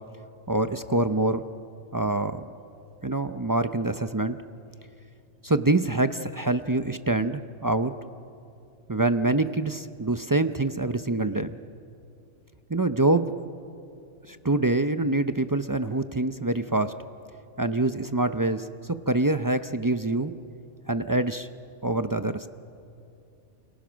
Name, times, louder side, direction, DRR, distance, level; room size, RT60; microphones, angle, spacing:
voice 1, 0.5-1.4 1.9-2.5 3.0-4.4 5.4-7.9 8.9-11.6 12.7-13.3 14.3-16.9 17.6-18.7 19.1-20.3 20.9-21.5 21.8-22.5, right 2 dB, 30° right, 10 dB, 0.3 m, -25 dB
29.0 x 28.0 x 6.3 m, 2.5 s
omnidirectional pair, 1.4 m